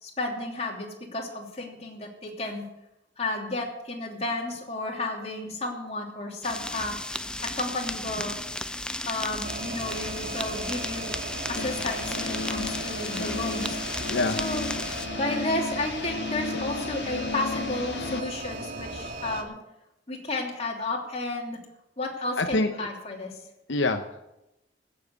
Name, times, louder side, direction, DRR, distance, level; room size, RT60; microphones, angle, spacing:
voice 1, 0.0-2.7 3.2-7.0 7.4-8.4 9.0-11.2 11.5-13.8 14.4-14.7 15.1-19.6 20.1-21.6 22.0-23.4, left 2 dB, 35° left, 0 dB, 3.0 m, -32 dB
sound 1, 6.4-15.1, left 1 dB, 5° left, 0.5 m, -34 dB
sound 2, 9.4-19.4, right 2 dB, 50° right, 1.9 m, -37 dB
sound 3, 11.5-18.2, left 4 dB, 65° left, 0.6 m, -34 dB
voice 2, 14.0-14.4 22.4-22.9 23.7-24.2, left 2 dB, 85° left, 6 dB, 1.0 m, -26 dB
16.0 x 7.7 x 8.2 m, 0.91 s
head